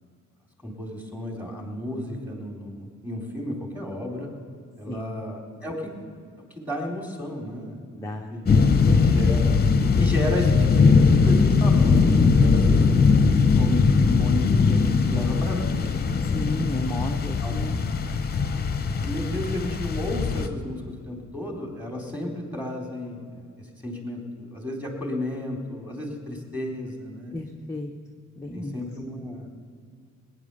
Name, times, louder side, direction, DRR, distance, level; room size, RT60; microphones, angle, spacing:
voice 1, 0.6-4.3 4.8-5.9 6.5-8.5 8.9-9.6 10.0-12.9 13.3-16.2 16.7-16.9 17.4-17.6 18.7-27.4 28.5-29.5, left 1 dB, 5° right, 1 dB, 3.9 m, -33 dB
voice 2, 7.9-8.4 16.3-18.0 27.3-27.9 28.4-28.8, left 1 dB, 10° left, 2 dB, 1.0 m, -32 dB
sound 1, 8.5-20.5, left 4 dB, 30° left, 1.1 m, -20 dB
18.5 x 9.9 x 7.0 m, 2.2 s
cardioid pair, 90°, 30 cm